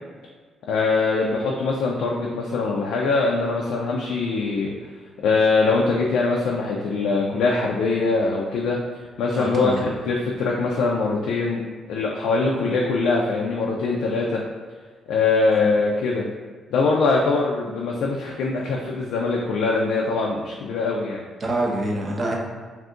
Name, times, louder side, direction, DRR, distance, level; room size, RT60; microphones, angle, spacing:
voice 1, 0.7-4.7 5.2-8.8 9.2-11.6 11.9-14.4 15.1-16.3 16.7-21.2, left 3 dB, 85° left, -2 dB, 0.3 m, -22 dB
voice 2, 9.3-9.8 12.6-12.8 21.4-22.3, right 1 dB, 40° right, -1 dB, 0.7 m, -26 dB
2.6 x 2.4 x 3.6 m, 1.5 s
cardioid pair, 90°, 0 cm